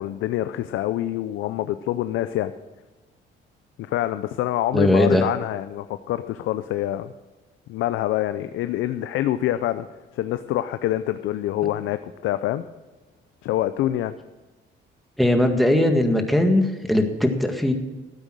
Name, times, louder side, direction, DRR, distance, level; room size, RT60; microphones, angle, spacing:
voice 1, 0.0-2.5 3.9-7.1 7.7-9.9 10.1-12.6 13.4-14.1, left 13 dB, 90° left, 11 dB, 0.6 m, -26 dB
voice 2, 4.7-5.3 15.2-17.7, left 1 dB, ahead, 3 dB, 1.9 m, -19 dB
13.0 x 9.2 x 6.3 m, 1.2 s
cardioid pair, 90°, 20 cm